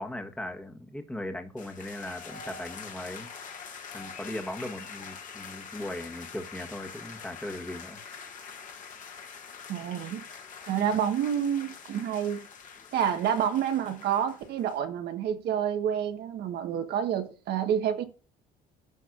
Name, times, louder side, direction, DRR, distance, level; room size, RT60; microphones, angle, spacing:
voice 1, 0.0-3.3 3.9-8.0, left 1 dB, 5° left, 1.3 m, -38 dB
sound 1, 1.6-14.8, left 6 dB, 50° left, 1.9 m, -45 dB
voice 2, 9.7-10.2 10.7-12.4 12.9-18.0, right 9 dB, 75° right, 1.4 m, -28 dB
15.0 x 5.4 x 2.5 m
cardioid pair, 110°, 17 cm